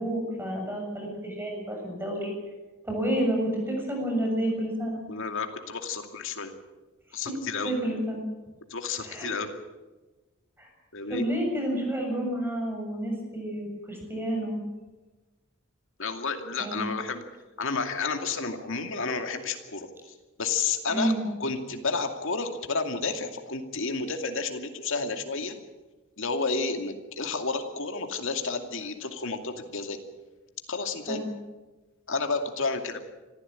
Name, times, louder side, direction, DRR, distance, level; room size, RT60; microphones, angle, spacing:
voice 1, 0.0-2.3 2.8-5.0 7.6-8.2 9.0-9.3 10.6-10.7 11.1-14.6 16.6-16.9 20.9-21.3 31.1-31.3, right 1 dB, 10° right, 0 dB, 7.2 m, -30 dB
voice 2, 5.1-6.5 7.1-7.7 8.7-9.5 10.9-11.2 16.0-17.2 17.6-19.9 20.4-25.5 26.2-30.0 30.7-31.2 32.1-33.0, left 4 dB, 65° left, 6 dB, 2.4 m, -31 dB
25.5 x 15.0 x 9.0 m, 1.2 s
head